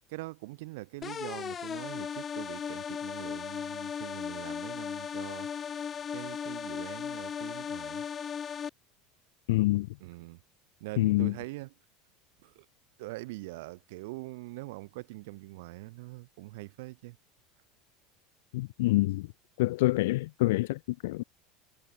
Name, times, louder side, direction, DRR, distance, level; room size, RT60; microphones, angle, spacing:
voice 1, 0.1-5.5 6.1-8.0 10.0-10.4 10.8-11.7 12.4-12.6 13.0-17.2, right 22 dB, 70° right, 3.4 m, -43 dB
sound 1, 1.0-8.7, left 7 dB, 20° left, 2.3 m, -37 dB
voice 2, 9.5-9.9 11.0-11.3 18.5-19.3 19.6-21.2, left 19 dB, 85° left, 0.5 m, -26 dB
cardioid pair, 175°, 0 cm